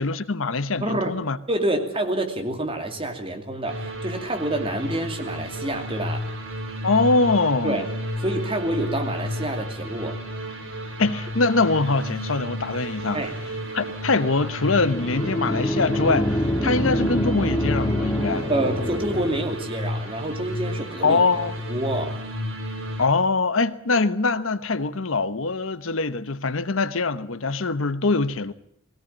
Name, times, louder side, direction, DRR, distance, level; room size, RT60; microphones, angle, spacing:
voice 1, 0.0-1.4 6.8-7.9 11.0-13.2 13.7-18.5 21.0-21.5 23.0-28.5, left 3 dB, 80° left, 1.0 m, -23 dB
voice 2, 0.8-1.1 1.5-6.3 7.6-7.9 8.2-10.2 13.1-13.3 18.5-21.2 21.7-22.2, right 1 dB, 25° right, 2.7 m, -27 dB
sound 1, 3.7-23.1, equal, 85° right, 4.7 m, -32 dB
sound 2, 14.7-19.6, equal, 15° left, 2.2 m, -26 dB
20.0 x 17.0 x 8.8 m
head